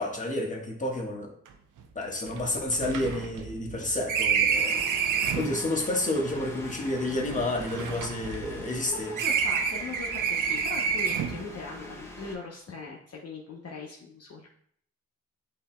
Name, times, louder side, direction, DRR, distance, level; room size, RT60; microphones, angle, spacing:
voice 1, 0.0-1.3 1.9-4.8 5.2-9.2, left 1 dB, 25° left, -1 dB, 1.3 m, -30 dB
sound 1, 1.5-1.6 1.8-1.9 2.3-5.6 6.4-8.8 9.2-11.5, right 6 dB, 70° right, 0.6 m, -29 dB
sound 2, 4.5-12.4, left 2 dB, 10° left, 1.2 m, -44 dB
voice 2, 8.9-14.5, left 4 dB, 50° left, -2 dB, 0.8 m, -40 dB
8.4 x 2.8 x 2.2 m, 0.63 s
cardioid pair, 55°, 32 cm